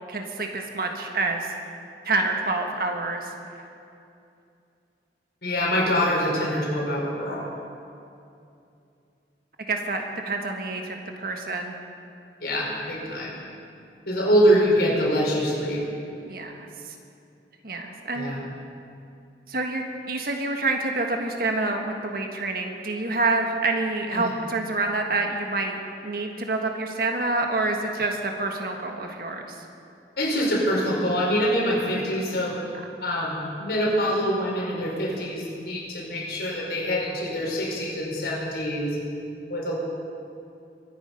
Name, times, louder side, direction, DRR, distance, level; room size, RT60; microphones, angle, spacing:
voice 1, 0.1-1.5 2.0-3.3 9.7-11.7 16.2-16.9 17.6-18.3 19.5-25.8 26.0-29.5, right 3 dB, 55° right, 3 dB, 1.5 m, -27 dB
voice 2, 5.4-7.4 12.4-13.3 14.1-15.8 18.1-18.4 24.1-24.3 30.2-32.6 33.0-39.0 39.5-39.7, equal, 70° left, -4 dB, 4.8 m, -24 dB
24.0 x 10.0 x 5.4 m, 2.6 s
head